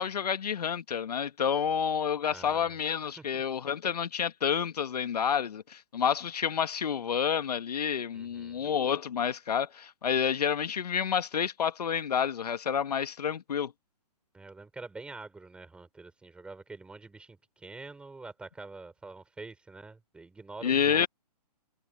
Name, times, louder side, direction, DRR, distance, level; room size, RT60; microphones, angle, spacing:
voice 1, 0.0-13.7 20.6-21.1, left 7 dB, 70° left, 1.7 m, -29 dB
voice 2, 2.3-2.8 3.2-3.4 8.1-8.6 14.3-21.1, right 3 dB, 5° right, 4.5 m, -46 dB
hypercardioid pair, 155°, 21 cm